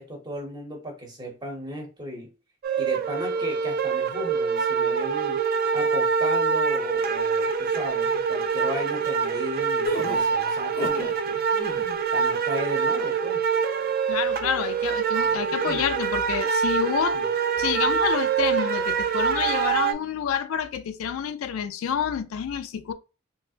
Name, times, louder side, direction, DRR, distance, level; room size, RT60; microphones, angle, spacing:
voice 1, 0.0-2.3 2.8-5.4 5.7-11.4 12.1-13.5 15.6-15.9 17.1-17.2, equal, 20° right, 0.9 m, -36 dB
sound 1, 2.6-19.9, right 6 dB, 45° right, 0.3 m, -25 dB
sound 2, 9.8-11.2 11.5-12.0, left 1 dB, 45° left, 0.7 m, -32 dB
voice 2, 14.1-17.2 17.6-22.9, left 8 dB, 75° left, 0.3 m, -28 dB
3.3 x 2.7 x 2.4 m
head